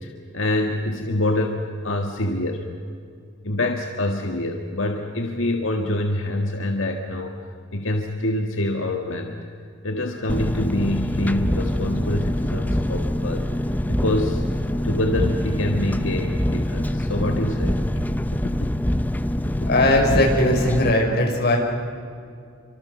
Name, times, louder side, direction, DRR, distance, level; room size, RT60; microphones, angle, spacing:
voice 1, 0.0-2.7 3.4-7.3 7.7-9.4 9.8-13.5 13.9-14.4 14.8-17.8 18.3-18.5 19.6-19.7, left 1 dB, 90° left, 3 dB, 1.9 m, -26 dB
Engine, 10.3-20.9, left 1 dB, 10° left, 0.8 m, -24 dB
voice 2, 19.7-21.6, left 1 dB, 55° left, 0 dB, 6.0 m, -19 dB
28.5 x 25.5 x 6.8 m, 2.3 s
head